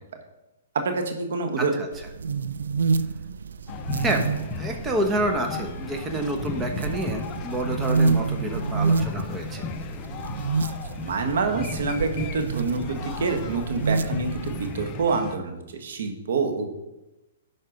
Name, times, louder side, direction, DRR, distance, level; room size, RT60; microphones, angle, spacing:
voice 1, 0.7-1.7 10.9-16.7, right 4 dB, 70° right, 5 dB, 1.5 m, -27 dB
voice 2, 1.6-1.9 4.0-4.2 4.6-9.6, right 1 dB, 15° right, 4 dB, 1.2 m, -28 dB
sound 1, 1.9-14.8, right 4 dB, 90° right, 0.4 m, -28 dB
sound 2, 3.7-15.4, left 5 dB, 25° left, 0.7 m, -36 dB
11.0 x 4.3 x 5.2 m, 1.0 s
hypercardioid pair, 145°, 0 cm